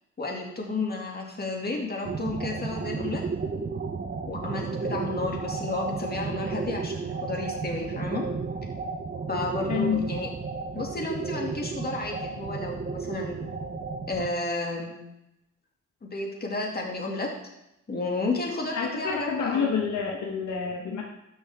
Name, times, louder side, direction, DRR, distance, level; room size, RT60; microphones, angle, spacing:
voice 1, 0.2-3.2 4.2-8.2 9.3-10.3 10.7-13.5 14.1-15.0 16.0-17.3 17.9-19.8, left 2 dB, 30° left, 0 dB, 2.3 m, -32 dB
sound 1, 2.0-14.3, right 4 dB, 35° right, 0.8 m, -33 dB
voice 2, 9.7-10.0 18.7-21.0, left 6 dB, 70° left, 1 dB, 1.3 m, -28 dB
13.0 x 6.3 x 3.6 m, 0.86 s
cardioid pair, 90°, 31 cm